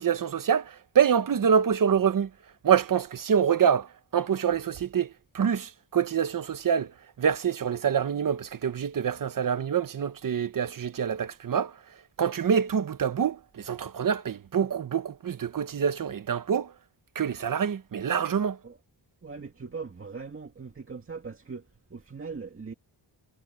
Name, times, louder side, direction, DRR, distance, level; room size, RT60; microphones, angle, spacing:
voice 1, 0.0-2.3 2.6-11.7 12.2-16.7 17.1-18.6, right 7 dB, 50° right, 1.1 m, -26 dB
voice 2, 19.2-22.7, right 4 dB, 30° right, 2.1 m, -40 dB
wide cardioid pair, 140°, 44 cm